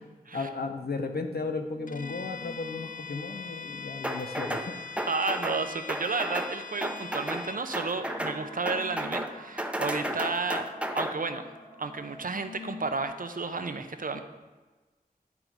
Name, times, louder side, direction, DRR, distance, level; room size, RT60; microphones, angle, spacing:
voice 1, 0.3-4.8, left 3 dB, 80° left, 5 dB, 0.8 m, -34 dB
sound 1, 1.2-13.1, left 1 dB, 35° left, 2.5 m, -48 dB
Bowed string instrument, 1.9-7.7, left 5 dB, 60° left, 0.4 m, -42 dB
sound 2, 4.0-4.7 5.0-5.6 5.9-6.5 6.8-7.4 7.7-8.4 8.7-9.3 9.6-11.1, right 1 dB, 5° right, 0.7 m, -32 dB
voice 2, 5.1-10.7 10.9-11.4 11.8-14.2, right 4 dB, 60° right, 8 dB, 0.6 m, -32 dB
10.5 x 3.8 x 4.6 m, 1.3 s
wide cardioid pair, 50°, 16 cm